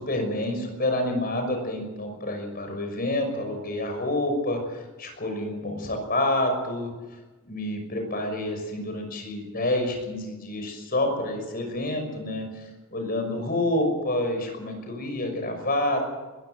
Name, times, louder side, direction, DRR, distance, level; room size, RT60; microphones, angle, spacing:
voice 1, 0.0-6.9 7.5-16.1, left 1 dB, 45° left, 4 dB, 6.0 m, -28 dB
21.0 x 16.5 x 7.9 m, 1.2 s
head